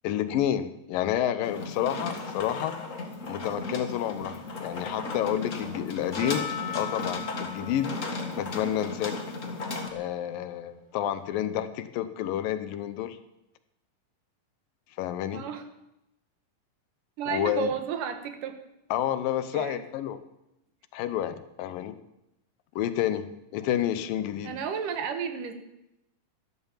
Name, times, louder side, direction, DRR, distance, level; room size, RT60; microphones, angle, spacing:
voice 1, 0.0-2.8 3.3-6.4 6.8-7.9 8.3-9.1 9.9-13.2 15.0-15.4 17.3-17.7 18.9-20.2 20.9-22.0 22.8-23.3 23.5-24.5, left 11 dB, 80° left, 12 dB, 2.6 m, -29 dB
sound 1, 1.4-9.9, left 3 dB, 35° left, 1.3 m, -35 dB
Percussion, 6.2-10.5 11.2-11.3, left 7 dB, 10° right, 2.4 m, -41 dB
voice 2, 15.3-15.6 17.2-18.6 19.5-19.8 24.4-25.5, right 8 dB, 75° right, 8 dB, 2.8 m, -32 dB
13.0 x 12.5 x 7.3 m, 0.88 s
omnidirectional pair, 4.0 m